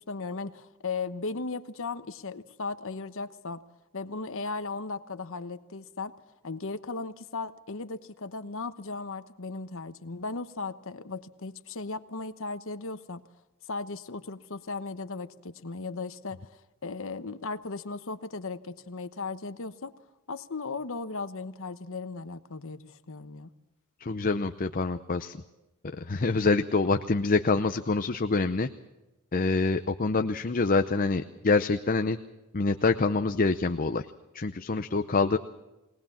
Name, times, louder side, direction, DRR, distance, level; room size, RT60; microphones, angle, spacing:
voice 1, 0.1-3.6 3.9-6.1 6.4-13.2 13.7-16.4 16.8-19.9 20.3-23.5, left 3 dB, 60° left, 11 dB, 1.1 m, -36 dB
voice 2, 24.0-25.3 26.1-28.7 29.3-32.2 32.5-34.0 34.3-35.4, left 3 dB, 40° left, 8 dB, 0.7 m, -26 dB
22.5 x 19.0 x 7.3 m, 1.0 s
head